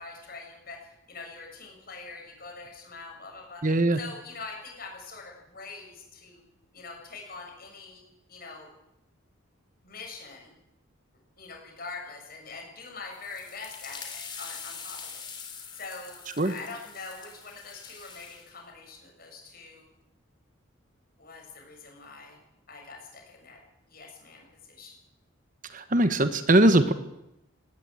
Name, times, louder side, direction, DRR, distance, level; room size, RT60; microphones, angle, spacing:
voice 1, 0.0-3.7 4.0-6.4 6.7-8.0 8.3-8.7 9.8-10.5 11.4-15.0 15.7-16.2 16.4-19.9 21.2-22.4 22.7-23.6 23.9-24.9, left 4 dB, 45° left, 1 dB, 7.2 m, -43 dB
voice 2, 3.6-4.0 16.4-16.5 25.7-26.9, right 1 dB, 40° right, 11 dB, 1.2 m, -21 dB
sound 1, 13.1-18.5, left 6 dB, 20° left, 3.2 m, -43 dB
19.0 x 18.0 x 9.1 m, 0.89 s
head